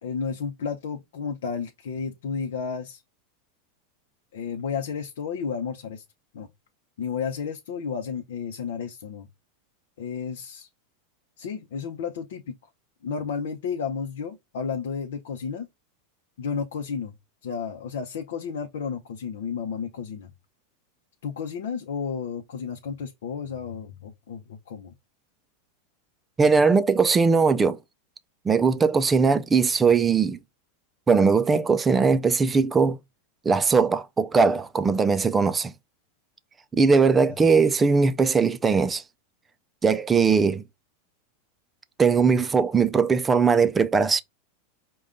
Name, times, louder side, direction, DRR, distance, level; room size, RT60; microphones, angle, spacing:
voice 1, 0.0-3.0 4.3-6.0 6.3-6.5 7.0-9.3 10.0-10.7 11.4-12.5 13.0-15.7 16.4-17.1 17.4-20.3 21.2-24.9, left 6 dB, 80° left, 0.6 m, -32 dB
voice 2, 26.4-27.8 28.5-30.4 31.1-33.0 33.5-35.7 36.7-39.0 39.8-40.6 42.0-44.2, right 5 dB, 15° right, 0.4 m, -20 dB
5.0 x 2.3 x 3.6 m
supercardioid pair, 135°, 0 cm